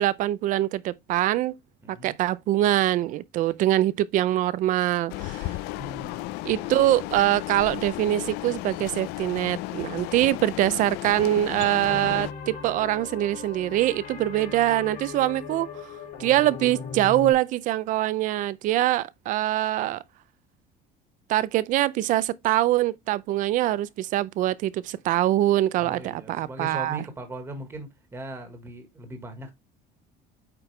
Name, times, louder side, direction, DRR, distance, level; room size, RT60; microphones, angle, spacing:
voice 1, 0.0-1.5 1.9-5.6 6.4-15.7 16.2-20.0 21.3-27.0, right 14 dB, 50° right, 0.5 m, -24 dB
voice 2, 1.8-2.1 5.8-6.8 25.8-29.5, right 1 dB, 15° right, 1.5 m, -39 dB
sound 1, 5.1-12.3, left 18 dB, 70° left, 0.4 m, -34 dB
sound 2, 11.8-17.3, left 6 dB, 45° left, 3.4 m, -38 dB
8.8 x 4.5 x 3.3 m
cardioid pair, 160°, 17 cm